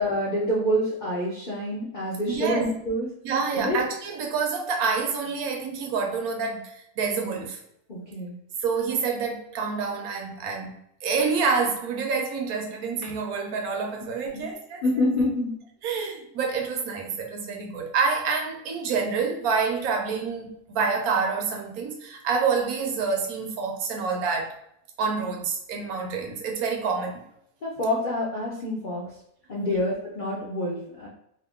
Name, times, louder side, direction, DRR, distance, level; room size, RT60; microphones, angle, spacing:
voice 1, 0.0-3.1 3.5-3.8 7.9-8.3 14.3-14.5 14.8-15.6 27.6-29.1 29.5-31.1, left 1 dB, 65° left, -5 dB, 0.5 m, -27 dB
voice 2, 2.3-2.7 3.2-7.6 8.6-14.8 15.8-24.6 25.0-27.2 29.7-29.8, right 5 dB, 75° right, 3 dB, 1.1 m, -27 dB
2.8 x 2.5 x 3.4 m, 0.72 s
omnidirectional pair, 1.6 m